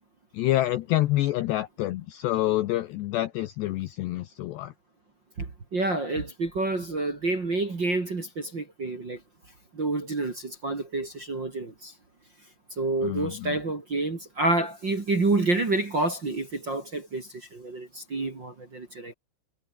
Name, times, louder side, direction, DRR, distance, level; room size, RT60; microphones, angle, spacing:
voice 1, 0.3-4.7 13.0-13.6, left 15 dB, 75° left, 2.6 m, -27 dB
voice 2, 5.4-9.2 9.7-11.9 12.8-19.1, right 2 dB, 30° right, 2.4 m, -28 dB
omnidirectional pair, 6.0 m